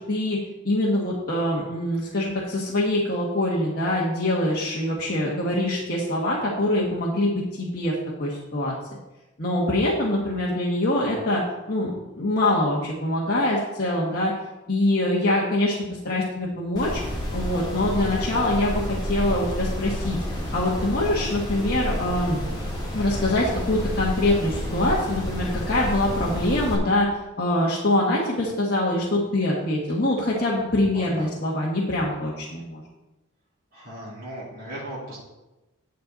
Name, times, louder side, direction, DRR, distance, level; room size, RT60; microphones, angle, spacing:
voice 1, 0.6-7.9 8.2-8.7 9.4-11.4 11.7-14.3 14.7-15.7 16.0-17.0 17.3-20.2 20.5-22.4 22.9-27.1 27.4-32.8, left 1 dB, 45° left, -5 dB, 1.5 m, -24 dB
sound 1, 16.8-26.8, equal, 20° left, 2.2 m, -30 dB
voice 2, 30.9-31.3 33.7-35.2, right 1 dB, 40° right, -8 dB, 3.7 m, -37 dB
10.0 x 7.8 x 4.0 m, 1.0 s
head